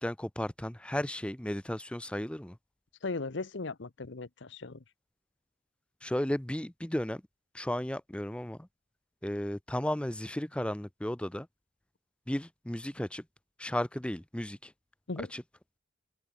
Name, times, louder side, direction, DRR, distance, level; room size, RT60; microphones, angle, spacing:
voice 1, 0.0-2.6 6.0-7.2 7.5-8.6 9.2-11.5 12.3-13.2 13.6-14.7 15.2-15.4, left 1 dB, 5° left, 0.6 m, -34 dB
voice 2, 3.0-4.8 15.1-15.3, left 3 dB, 65° left, 0.9 m, -37 dB
head